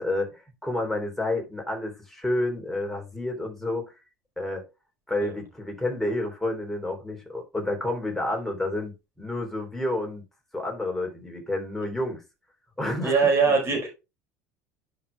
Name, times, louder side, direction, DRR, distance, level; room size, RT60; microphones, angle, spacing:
voice 1, 0.0-3.9 4.4-4.7 5.1-10.2 10.5-12.2 12.8-13.5, left 1 dB, 5° left, 3.5 m, -30 dB
voice 2, 13.0-13.9, right 5 dB, 35° right, 4.5 m, -22 dB
11.0 x 5.6 x 2.4 m
hypercardioid pair, 70°, 8 cm